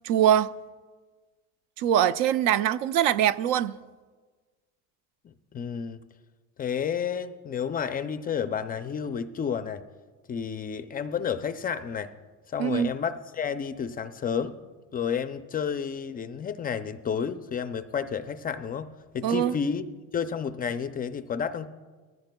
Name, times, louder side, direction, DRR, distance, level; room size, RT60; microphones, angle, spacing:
voice 1, 0.0-0.5 1.8-3.8 12.6-12.9 19.2-19.6, right 10 dB, 65° right, 0.5 m, -23 dB
voice 2, 5.2-6.0 6.6-9.8 10.3-12.1 12.5-14.5 14.9-18.9 19.1-19.8 20.1-21.7, left 7 dB, 25° left, 0.4 m, -31 dB
20.5 x 14.5 x 2.2 m
cardioid pair, 140°, 36 cm